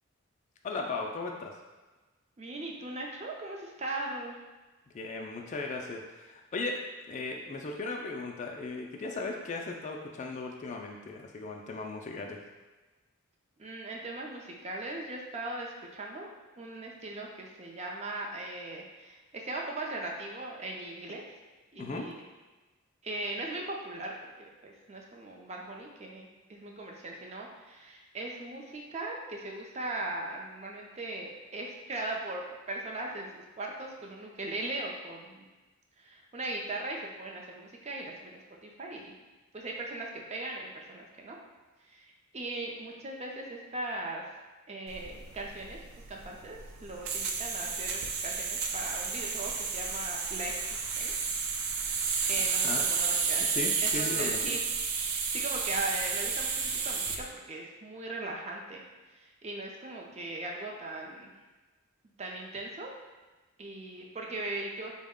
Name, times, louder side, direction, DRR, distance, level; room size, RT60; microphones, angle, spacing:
voice 1, 0.6-1.5 4.9-6.8 7.1-12.4 21.8-22.1 52.4-52.9 53.5-54.4, left 3 dB, 35° left, 1 dB, 0.3 m, -37 dB
voice 2, 2.4-4.4 13.6-21.2 21.7-22.2 23.0-35.4 36.0-39.1 39.5-41.4 41.9-44.2 44.7-45.8 46.1-51.3 52.3-53.5 53.8-54.6 55.1-58.8 59.1-61.3 62.2-62.9 63.6-64.9, right 2 dB, 30° right, -1 dB, 0.5 m, -39 dB
sound 1, 44.9-57.2, right 5 dB, 85° right, 0.4 m, -31 dB
4.1 x 2.1 x 3.6 m, 1.2 s
head